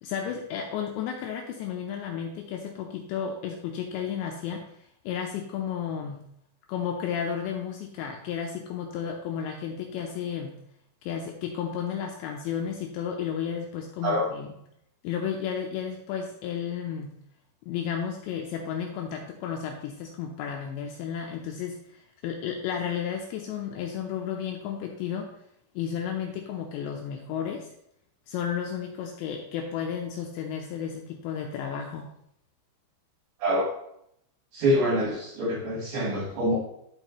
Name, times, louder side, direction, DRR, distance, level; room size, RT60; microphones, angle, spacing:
voice 1, 0.0-4.7 5.1-6.2 6.7-10.6 11.0-14.5 15.0-17.2 17.7-25.3 25.8-27.7 28.3-32.1, left 8 dB, 85° left, 2 dB, 2.5 m, -33 dB
voice 2, 34.5-36.6, equal, 65° right, -2 dB, 2.4 m, -25 dB
12.5 x 5.2 x 3.0 m, 0.76 s
omnidirectional pair, 5.9 m